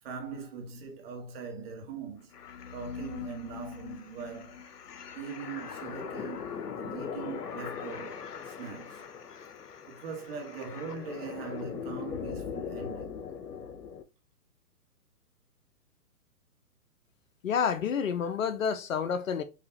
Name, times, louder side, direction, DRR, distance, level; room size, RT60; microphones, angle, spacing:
voice 1, 0.0-2.3 2.7-4.6 5.1-9.0 9.9-13.2, right 5 dB, 40° right, 1.7 m, -41 dB
sound 1, 2.3-14.0, left 7 dB, 85° left, 0.8 m, -40 dB
voice 2, 17.4-19.4, left 7 dB, 60° left, 0.8 m, -29 dB
6.0 x 3.0 x 3.0 m
hypercardioid pair, 140°, 46 cm